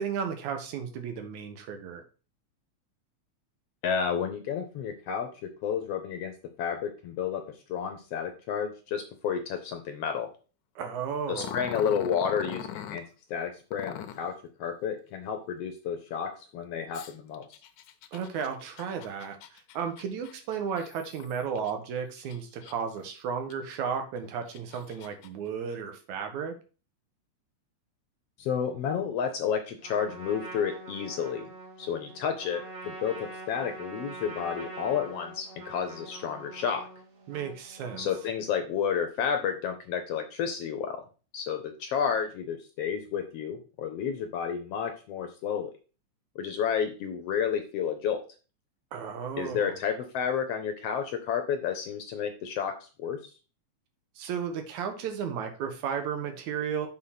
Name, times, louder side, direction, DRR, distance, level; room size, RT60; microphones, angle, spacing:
voice 1, 0.0-2.0 10.8-11.6 18.1-26.5 37.3-38.1 48.9-49.8 54.2-56.9, right 7 dB, 80° right, 6 dB, 2.5 m, -34 dB
voice 2, 3.8-6.3 6.6-7.4 7.7-10.3 11.3-13.0 13.3-17.5 28.4-31.5 31.8-36.9 38.0-41.0 41.3-45.7 46.3-48.2 49.4-53.2, left 7 dB, 70° left, 6 dB, 1.5 m, -31 dB
Growling, 11.4-13.0 13.7-14.3 16.9-21.7 22.2-23.0 23.5-23.6 24.3-25.3, left 10 dB, 90° left, 2.1 m, -42 dB
Trumpet, 29.8-38.5, right 2 dB, 50° right, 3.2 m, -44 dB
6.6 x 3.8 x 5.8 m, 0.35 s
omnidirectional pair, 3.4 m